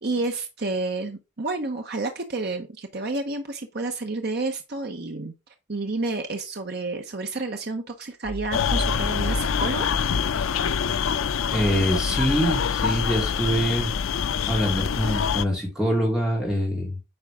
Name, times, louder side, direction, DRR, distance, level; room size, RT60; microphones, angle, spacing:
voice 1, 0.0-5.3 5.7-9.9, right 2 dB, 50° right, 0.9 m, -30 dB
sound 1, 8.2-10.9, equal, 25° right, 0.9 m, -33 dB
sound 2, 8.5-15.4, left 7 dB, 80° left, 0.4 m, -25 dB
voice 2, 11.5-13.9 14.5-17.0, equal, ahead, 3.1 m, -24 dB
8.8 x 4.8 x 3.5 m
head